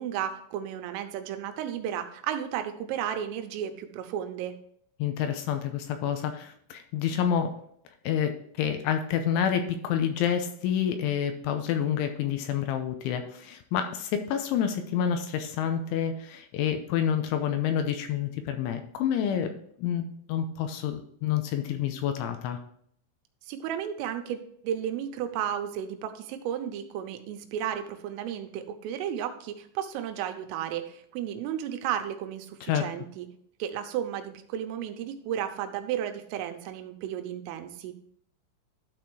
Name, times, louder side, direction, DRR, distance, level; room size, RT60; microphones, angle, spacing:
voice 1, 0.0-4.5 23.4-33.3 33.6-37.9, right 10 dB, 85° right, 6 dB, 3.4 m, -33 dB
voice 2, 5.0-7.5 8.0-19.5 19.8-22.6 32.6-32.8, left 9 dB, 80° left, 7 dB, 3.0 m, -28 dB
12.5 x 4.3 x 4.7 m, 0.65 s
omnidirectional pair, 5.8 m